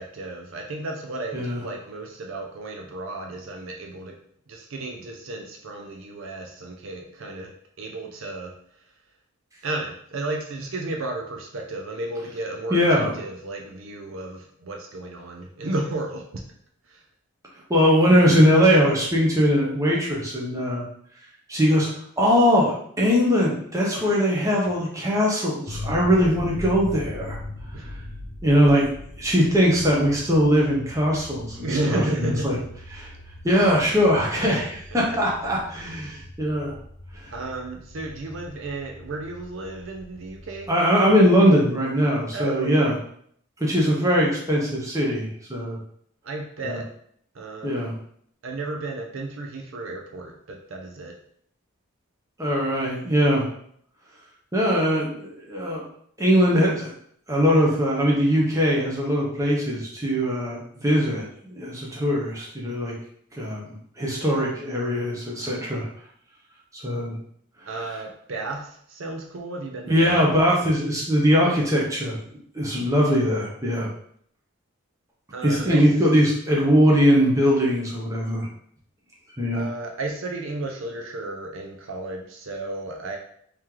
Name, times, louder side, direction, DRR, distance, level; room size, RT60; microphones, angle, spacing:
voice 1, 0.0-4.2 4.5-8.5 9.6-16.3 16.9-17.0 27.7-27.8 31.6-32.5 34.9-35.2 37.3-40.7 42.3-42.9 46.2-46.9 47.3-47.8 48.4-51.1 67.7-70.2 75.3-75.8 79.5-83.2, right 2 dB, 65° right, 2 dB, 0.5 m, -33 dB
voice 2, 12.7-13.1 17.7-20.8 21.5-21.9 22.2-27.4 27.7-28.0 28.4-28.9 29.2-32.6 32.9-33.1 33.4-36.8 37.1-37.3 40.7-42.9 43.6-45.8 46.6-46.8 47.6-48.0 52.4-53.5 54.5-55.8 56.2-56.9 57.3-62.9 63.4-63.6 64.0-65.9 66.7-67.1 69.9-72.2 72.5-73.9 75.4-78.5 79.4-79.7, equal, 15° right, -4 dB, 0.9 m, -21 dB
sound 1, 25.7-40.7, left 1 dB, 45° left, 0.6 m, -40 dB
3.1 x 2.9 x 3.7 m, 0.64 s
head